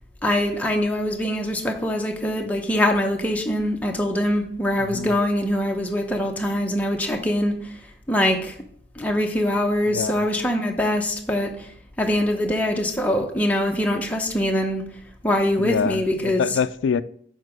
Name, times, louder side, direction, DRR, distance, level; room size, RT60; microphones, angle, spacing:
voice 1, 0.2-7.7 8.1-8.5 9.0-11.7 12.0-14.8 15.2-16.4, left 1 dB, 10° left, 0.7 m, -23 dB
voice 2, 4.8-5.1 9.9-10.3 15.6-17.0, left 6 dB, 75° left, 0.3 m, -25 dB
6.5 x 4.3 x 4.9 m
head